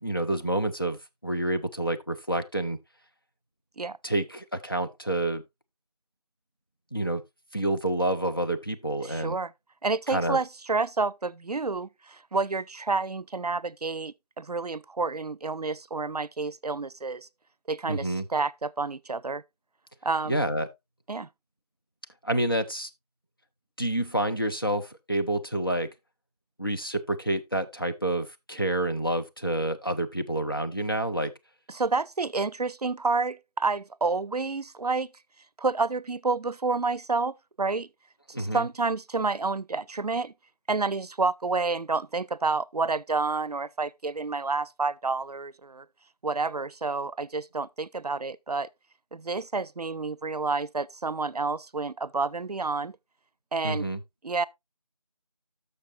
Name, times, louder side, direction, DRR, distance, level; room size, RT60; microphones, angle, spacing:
voice 1, 0.0-2.8 4.0-5.4 6.9-7.2 7.5-9.4 10.1-10.4 17.9-18.2 20.3-20.7 22.2-22.9 23.8-25.9 26.6-31.3 38.3-38.6 53.6-54.0, right 1 dB, 35° left, 0.7 m, -28 dB
voice 2, 9.0-9.5 9.8-17.3 17.7-19.4 20.0-20.4 21.1-21.3 31.7-35.1 35.6-37.9 38.4-40.3 40.7-45.9 46.2-48.7 49.1-53.0 53.5-53.9 54.2-54.5, right 3 dB, 75° right, 0.5 m, -29 dB
12.5 x 6.5 x 2.5 m
figure-of-eight pair, 175°, 20 cm